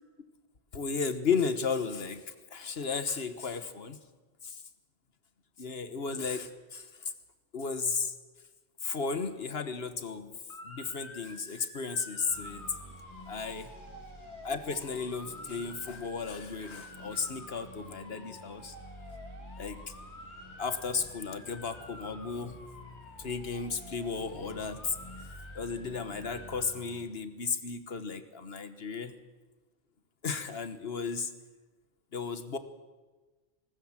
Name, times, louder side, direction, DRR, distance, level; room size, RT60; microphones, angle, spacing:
voice 1, 0.7-4.0 4.4-4.6 5.6-7.1 7.5-8.1 8.8-10.3 10.6-12.6 13.3-13.7 14.4-18.7 19.6-19.9 20.6-22.6 23.2-25.1 25.5-29.1 30.2-31.3 32.1-32.6, left 5 dB, 65° left, 10 dB, 1.5 m, -34 dB
Motor vehicle (road) / Siren, 10.5-26.7, left 1 dB, 80° left, 3.3 m, -50 dB
sound 1, 12.3-27.0, equal, 25° left, 2.6 m, -51 dB
19.5 x 19.0 x 7.4 m, 1.2 s
omnidirectional pair, 1.1 m